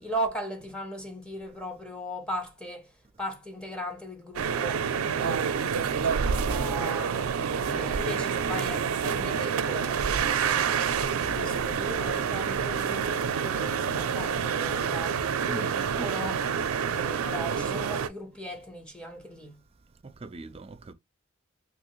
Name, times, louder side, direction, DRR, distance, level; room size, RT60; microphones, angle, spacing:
voice 1, 0.0-2.9 3.2-4.9 5.2-7.3 7.7-16.5 16.9-19.6, equal, 5° left, 0.7 m, -38 dB
sound 1, 4.4-18.1, right 6 dB, 85° right, 0.4 m, -28 dB
Keyboard (musical), 7.5-9.8 11.4-15.7, left 3 dB, 60° left, 0.6 m, -51 dB
voice 2, 15.5-15.8 20.0-20.9, right 3 dB, 30° right, 0.4 m, -42 dB
3.3 x 2.9 x 2.9 m
head